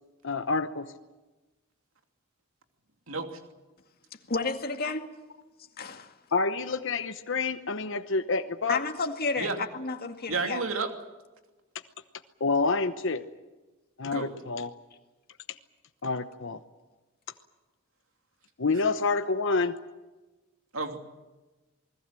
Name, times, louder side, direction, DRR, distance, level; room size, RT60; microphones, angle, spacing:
voice 1, 0.2-0.9 6.3-8.8 12.4-13.2 14.0-14.7 16.0-16.6 18.6-19.7, left 3 dB, 65° left, 8 dB, 1.0 m, -28 dB
voice 2, 4.3-5.1 5.8-6.1 8.7-10.6, left 3 dB, 50° left, 5 dB, 2.1 m, -31 dB
voice 3, 10.3-10.9 14.1-14.3 20.7-21.0, right 4 dB, 75° right, 5 dB, 2.8 m, -31 dB
27.5 x 21.0 x 7.7 m, 1.2 s
head